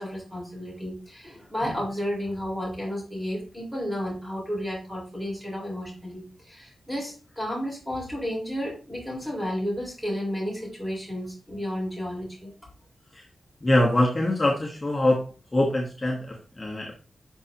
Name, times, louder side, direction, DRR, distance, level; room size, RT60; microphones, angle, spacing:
voice 1, 0.0-12.5, equal, 10° right, -3 dB, 4.3 m, -32 dB
voice 2, 13.6-15.2 15.5-16.9, left 1 dB, 20° left, -1 dB, 1.1 m, -23 dB
11.5 x 5.5 x 2.8 m, 0.35 s
wide cardioid pair, 180°, 0 cm